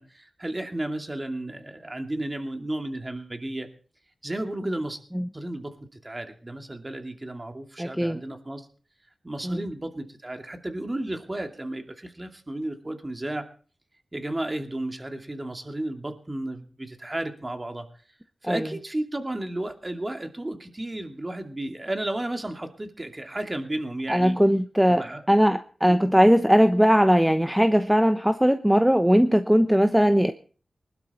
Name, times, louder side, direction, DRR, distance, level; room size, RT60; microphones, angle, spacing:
voice 1, 0.0-3.7 4.2-5.0 5.3-8.7 9.2-13.5 14.1-17.9 18.4-24.4 24.9-25.3 25.8-26.1, right 1 dB, 25° right, 5 dB, 2.5 m, -33 dB
voice 2, 7.8-8.2 9.4-9.6 18.4-18.7 24.1-30.3, equal, 5° right, 9 dB, 0.9 m, -19 dB
20.0 x 12.0 x 4.3 m, 0.41 s
cardioid pair, 50°, 0 cm